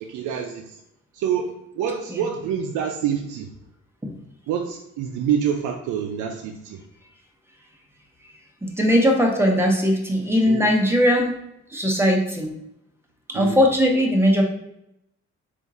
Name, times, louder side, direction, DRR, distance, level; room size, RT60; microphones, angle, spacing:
voice 1, 0.0-0.8 1.1-3.5 4.5-6.8 10.5-10.7 13.3-13.6, right 8 dB, 80° right, 2 dB, 0.5 m, -27 dB
voice 2, 8.6-11.3 11.7-12.5 13.3-14.4, equal, 10° right, 1 dB, 0.9 m, -19 dB
3.5 x 2.5 x 4.2 m, 0.80 s
cardioid pair, 90°, 30 cm